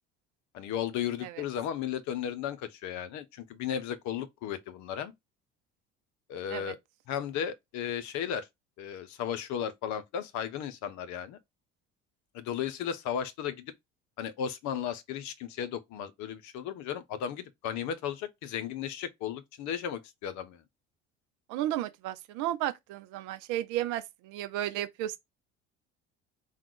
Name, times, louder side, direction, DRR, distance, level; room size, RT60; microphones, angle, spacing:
voice 1, 0.5-5.1 6.3-6.8 7.1-8.5 8.8-11.4 12.3-13.7 14.2-20.6, left 9 dB, 55° left, 0.8 m, -35 dB
voice 2, 21.5-25.2, right 13 dB, 60° right, 0.7 m, -33 dB
3.7 x 2.4 x 4.6 m
hypercardioid pair, 60°, 35 cm